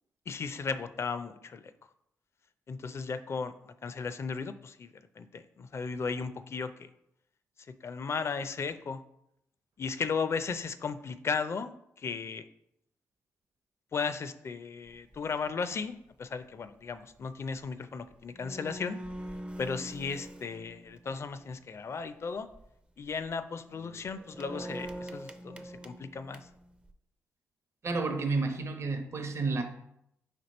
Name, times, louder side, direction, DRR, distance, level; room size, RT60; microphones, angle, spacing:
voice 1, 0.3-1.7 2.7-6.9 7.8-9.0 9.8-11.7 12.0-12.4 13.9-19.0 19.6-22.5 23.0-26.5, left 5 dB, 50° left, 11 dB, 0.4 m, -35 dB
sound 1, 14.9-15.2 15.7-15.9 17.9-18.0 18.1-21.5 22.4-22.7 23.0-23.3 23.7-26.9, right 1 dB, 15° right, 0.4 m, -44 dB
voice 2, 27.8-29.6, right 3 dB, 50° right, 6 dB, 0.7 m, -30 dB
4.3 x 3.0 x 4.1 m, 0.77 s
supercardioid pair, 60°, 6 cm